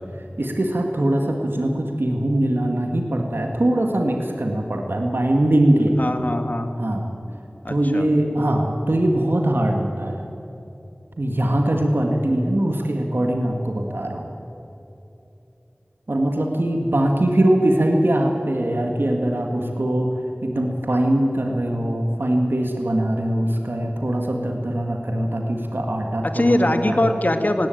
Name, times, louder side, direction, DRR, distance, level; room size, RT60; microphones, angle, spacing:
voice 1, 0.4-6.2 6.8-7.1 7.7-10.2 11.2-14.3 16.1-20.1 20.4-27.2, right 1 dB, 80° right, 3 dB, 1.9 m, -22 dB
voice 2, 6.0-6.7 7.6-8.1 26.2-27.7, left 1 dB, 50° left, 7 dB, 1.9 m, -22 dB
19.0 x 17.5 x 9.1 m, 2.9 s
wide cardioid pair, 45°, 4 cm